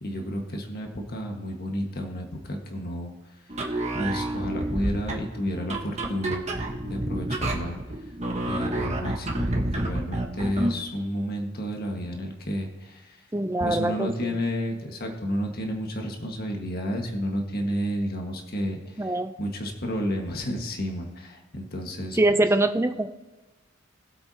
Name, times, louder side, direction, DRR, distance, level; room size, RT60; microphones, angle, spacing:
voice 1, 0.0-3.1 3.9-6.4 6.8-7.8 8.4-13.2 13.6-22.2, equal, 45° left, 2 dB, 1.7 m, -31 dB
sound 1, 3.5-10.8, right 1 dB, 30° right, 1.3 m, -29 dB
voice 2, 13.3-14.4 19.0-19.3 22.2-23.1, right 1 dB, 10° right, 9 dB, 0.5 m, -23 dB
20.5 x 8.0 x 2.9 m, 1.2 s
head